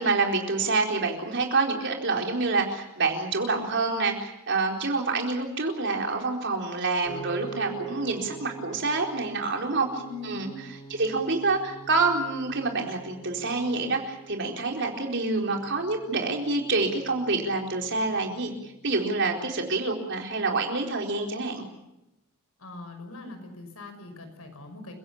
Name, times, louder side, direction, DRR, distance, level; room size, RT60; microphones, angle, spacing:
voice 1, 0.0-10.5 10.9-21.6, right 3 dB, 55° right, 2 dB, 4.3 m, -27 dB
Piano, 7.0-19.3, right 5 dB, 30° left, 6.9 m, -44 dB
voice 2, 10.0-10.5 22.6-24.9, left 3 dB, 75° left, 6 dB, 5.9 m, -41 dB
29.0 x 16.5 x 8.6 m, 0.92 s
head